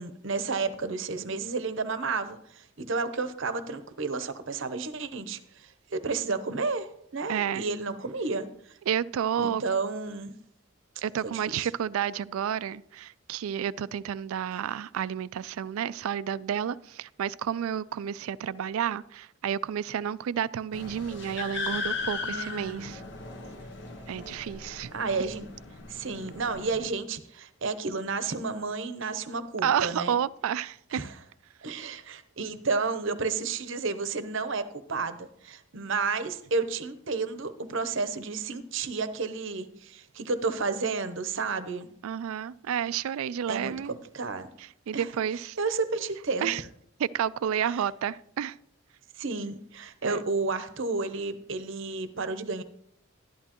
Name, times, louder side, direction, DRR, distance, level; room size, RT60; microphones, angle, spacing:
voice 1, 0.0-6.9 7.1-8.8 9.4-10.3 11.2-11.7 22.2-22.9 24.9-25.5 25.9-30.1 30.9-31.1 31.6-41.9 43.5-44.5 44.9-45.1 45.6-46.5 47.6-47.8 49.2-52.6, right 4 dB, 60° right, 0.7 m, -31 dB
voice 2, 7.3-7.7 8.9-9.6 11.0-23.0 24.1-24.9 29.6-31.0 42.0-43.9 44.6-45.6 46.4-46.6 47.0-48.6 50.0-50.2, right 8 dB, 75° right, 0.3 m, -30 dB
sound 1, 20.7-26.9, left 4 dB, 50° left, 1.2 m, -37 dB
11.5 x 11.0 x 3.0 m
head